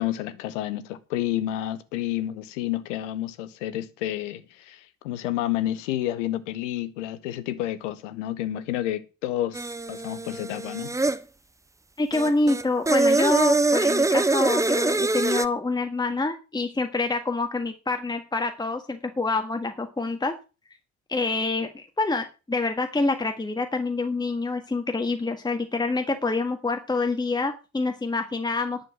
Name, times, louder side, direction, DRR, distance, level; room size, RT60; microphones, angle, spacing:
voice 1, 0.0-11.0, left 13 dB, 65° left, 1.3 m, -30 dB
sound 1, 9.5-11.2 12.1-15.5, right 3 dB, 10° right, 0.7 m, -23 dB
voice 2, 12.0-20.3 21.1-28.8, left 3 dB, 10° left, 1.6 m, -26 dB
11.0 x 7.0 x 7.5 m
figure-of-eight pair, 55°, 39 cm